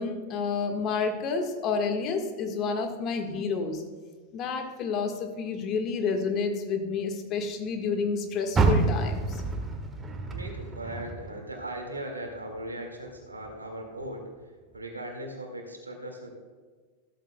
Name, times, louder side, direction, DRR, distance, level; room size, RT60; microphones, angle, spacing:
voice 1, 0.0-3.8 4.3-9.4, left 5 dB, 35° left, 4 dB, 1.6 m, -29 dB
Car, 8.5-11.8 12.2-13.6 14.0-14.1 14.7-14.8, right 3 dB, 20° right, 1.5 m, -28 dB
voice 2, 10.3-14.3 14.7-16.3, right 1 dB, 85° right, 2 dB, 2.0 m, -38 dB
14.5 x 12.5 x 2.3 m, 1.4 s
figure-of-eight pair, 90°, 0 cm